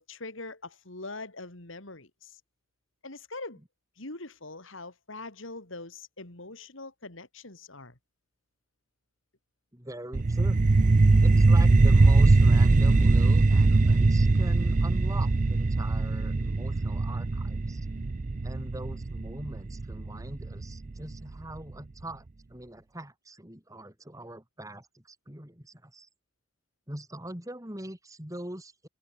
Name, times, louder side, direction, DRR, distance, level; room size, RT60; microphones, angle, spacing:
voice 1, 0.0-2.4 3.0-3.6 4.0-8.0, left 2 dB, 70° left, 3.4 m, -42 dB
voice 2, 9.7-10.6 11.2-17.9 18.4-26.1 26.9-28.9, right 1 dB, 15° right, 3.8 m, -41 dB
sound 1, 10.1-21.2, right 3 dB, 40° right, 0.5 m, -21 dB
head